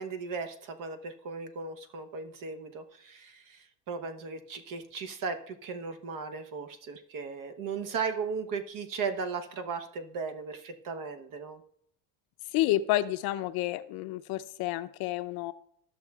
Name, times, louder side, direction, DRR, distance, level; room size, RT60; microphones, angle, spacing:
voice 1, 0.0-11.6, right 5 dB, 45° right, 8 dB, 0.9 m, -36 dB
voice 2, 12.5-15.5, left 15 dB, 55° left, 12 dB, 0.6 m, -29 dB
12.5 x 6.5 x 2.3 m, 0.67 s
supercardioid pair, 120°, 44 cm